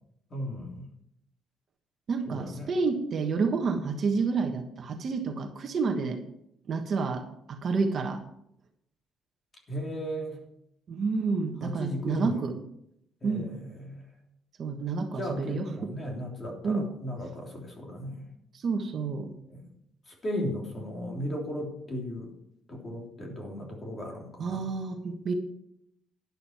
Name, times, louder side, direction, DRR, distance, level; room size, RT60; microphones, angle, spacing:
voice 1, 0.3-0.9 2.3-2.7 9.7-10.4 11.6-12.4 13.2-14.0 15.2-18.2 19.5-19.7 20.1-22.3 22.7-24.7, equal, 25° left, 0 dB, 3.2 m, -36 dB
voice 2, 2.1-6.2 6.7-8.2 10.9-12.5 13.2-13.5 14.6-15.9 16.6-16.9 18.5-19.3 24.4-25.3, right 4 dB, 40° right, 4 dB, 1.4 m, -29 dB
12.0 x 11.0 x 4.5 m, 0.75 s
cardioid pair, 155°, 0 cm